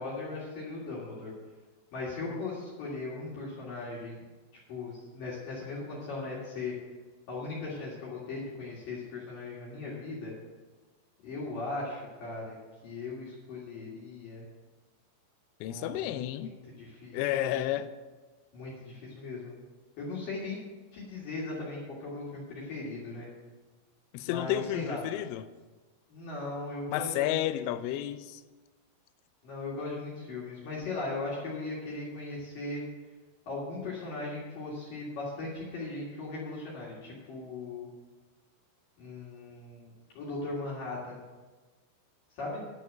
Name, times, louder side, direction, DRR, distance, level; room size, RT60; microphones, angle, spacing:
voice 1, 0.0-1.3 1.9-4.2 4.7-6.7 7.3-10.3 11.2-12.6 12.8-14.4 15.7-16.5 16.8-17.2 17.5-17.6 18.5-19.5 20.0-20.6 20.9-23.3 24.2-25.0 26.1-27.7 29.4-32.8 33.5-37.9 39.0-39.9 40.1-41.2 42.4-42.6, left 3 dB, 55° left, -6 dB, 3.0 m, -38 dB
voice 2, 15.6-16.6 17.1-17.9 24.1-25.5 26.9-28.4, left 13 dB, 85° left, 12 dB, 3.1 m, -31 dB
10.5 x 6.4 x 7.5 m, 1.3 s
omnidirectional pair, 5.6 m